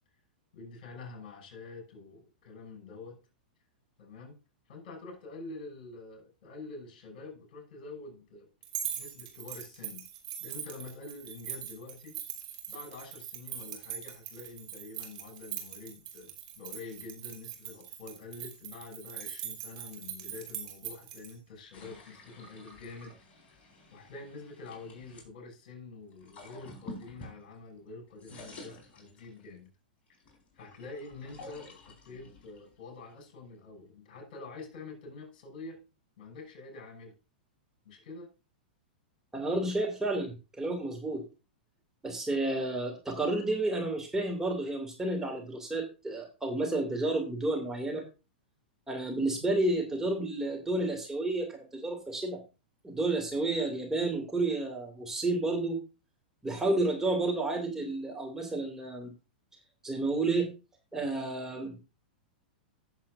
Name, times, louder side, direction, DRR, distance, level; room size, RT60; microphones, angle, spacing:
voice 1, 0.5-3.2 4.0-4.4 4.7-8.5 8.9-10.1 10.4-12.2 12.7-23.1 23.9-29.7 30.5-35.8 36.2-37.1 37.8-38.3, left 3 dB, 55° left, 6.0 m, -46 dB
sound 1, 8.6-21.3, right 10 dB, 55° right, 3.1 m, -41 dB
sound 2, 21.7-25.3 26.1-27.8 28.1-29.6 30.1-33.5, left 1 dB, 30° left, 4.3 m, -50 dB
voice 2, 39.3-41.2 42.0-48.0 48.9-52.4 52.8-55.8 56.4-59.1 59.8-60.5 60.9-61.8, right 2 dB, 10° right, 2.4 m, -31 dB
15.5 x 7.4 x 2.6 m
hypercardioid pair, 105°, 5 cm